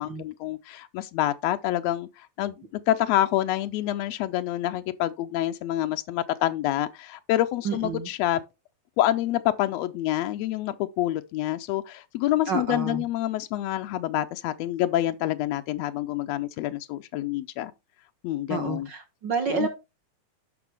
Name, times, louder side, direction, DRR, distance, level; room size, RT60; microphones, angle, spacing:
voice 1, 0.0-2.6 2.9-8.4 9.0-17.7 18.2-18.9 19.5-19.7, left 13 dB, 85° left, 1.5 m, -27 dB
voice 2, 7.6-8.1 12.5-13.0 18.5-19.7, right 5 dB, 65° right, 1.1 m, -29 dB
11.0 x 6.1 x 3.4 m
omnidirectional pair, 3.6 m